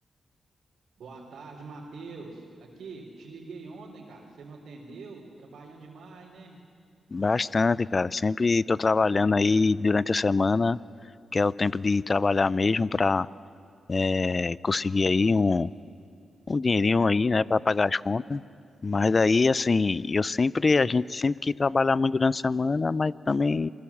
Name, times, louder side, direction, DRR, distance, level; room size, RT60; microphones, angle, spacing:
voice 1, 1.0-6.6 16.9-17.4 18.0-18.4, right 3 dB, 75° right, -4 dB, 3.7 m, -45 dB
voice 2, 7.1-10.8 11.3-13.3 13.9-15.7 16.5-18.4 18.8-23.7, left 3 dB, 40° left, 20 dB, 0.5 m, -24 dB
27.0 x 20.5 x 7.3 m, 2.5 s
supercardioid pair, 55°, 0 cm